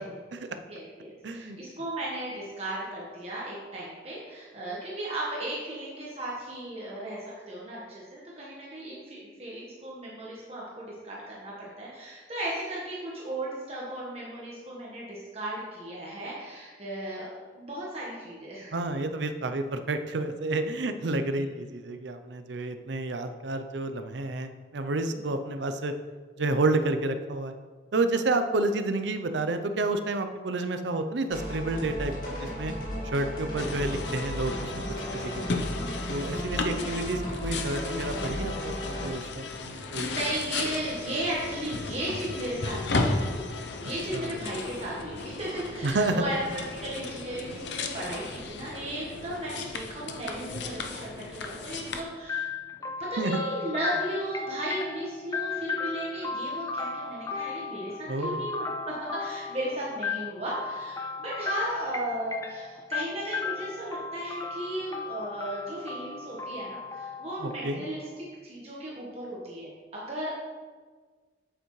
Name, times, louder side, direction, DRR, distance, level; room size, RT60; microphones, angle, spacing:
voice 1, 0.6-18.7 21.3-21.4 25.1-25.2 35.7-36.6 39.7-43.2 43.8-52.5 53.0-70.3, right 1 dB, 35° right, -5 dB, 1.3 m, -36 dB
voice 2, 1.2-1.6 18.7-25.9 26.4-27.6 27.9-32.7 33.1-34.8 35.1-35.6 36.1-40.2 44.1-44.3 45.8-46.2 53.2-53.4 58.1-58.5 67.4-67.8, right 2 dB, 75° right, 8 dB, 0.6 m, -30 dB
sound 1, 31.3-39.1, equal, 50° left, 2.1 m, -35 dB
sound 2, 33.6-52.0, left 3 dB, 75° left, 0.7 m, -35 dB
sound 3, 52.3-68.1, left 5 dB, 15° left, 0.4 m, -36 dB
8.0 x 7.9 x 3.2 m, 1.4 s
head